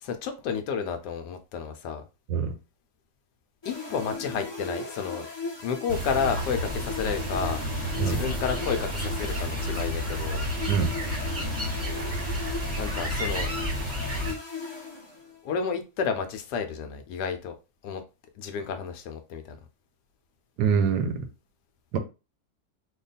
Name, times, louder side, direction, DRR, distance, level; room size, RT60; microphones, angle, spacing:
voice 1, 0.0-2.0 3.6-5.3 5.6-7.6 8.0-10.4 12.8-13.5 15.4-17.6 17.8-18.0 18.4-19.6, left 6 dB, 80° left, 1.2 m, -31 dB
sound 1, 3.6-15.5, left 4 dB, 35° left, 0.4 m, -38 dB
sound 2, 5.9-14.3, equal, 10° right, 0.8 m, -31 dB
voice 2, 20.6-21.3 21.9-22.0, right 6 dB, 75° right, 1.2 m, -24 dB
3.0 x 2.2 x 4.0 m
omnidirectional pair, 1.8 m